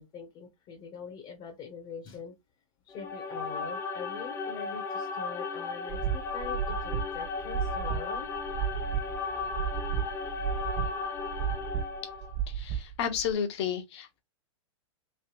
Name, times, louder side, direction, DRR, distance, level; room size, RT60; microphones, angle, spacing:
voice 1, 0.0-2.3 2.8-8.3, left 6 dB, 30° left, 1.1 m, -43 dB
sound 1, 2.9-12.4, left 4 dB, 15° left, 0.6 m, -35 dB
sound 2, 5.9-13.3, right 10 dB, 40° right, 1.6 m, -33 dB
voice 2, 12.5-14.2, left 8 dB, 55° left, 1.1 m, -32 dB
3.4 x 3.2 x 2.9 m
hypercardioid pair, 120°, 18 cm